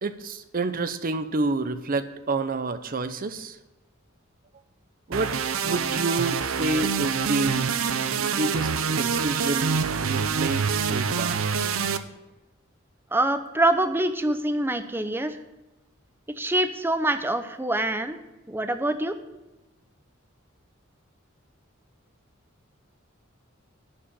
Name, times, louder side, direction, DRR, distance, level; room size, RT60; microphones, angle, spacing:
voice 1, 0.0-3.6 5.1-5.4 5.6-7.8 8.1-11.4, right 3 dB, 45° right, 11 dB, 0.7 m, -29 dB
sound 1, 5.1-12.0, right 6 dB, 85° right, 0.7 m, -26 dB
voice 2, 13.1-15.4 16.4-18.2 18.5-19.2, right 1 dB, 10° right, 9 dB, 0.7 m, -25 dB
11.5 x 5.0 x 8.5 m, 1.1 s
head